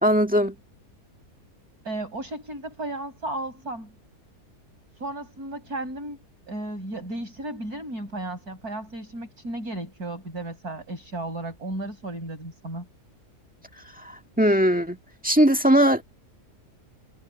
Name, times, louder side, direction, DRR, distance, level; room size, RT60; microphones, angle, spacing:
voice 1, 0.0-0.5 14.0-14.1 14.4-15.0 15.2-16.0, equal, 5° right, 1.6 m, -19 dB
voice 2, 1.8-3.9 5.0-6.2 6.5-12.9, right 1 dB, 65° right, 8.5 m, -34 dB
omnidirectional pair, 1.7 m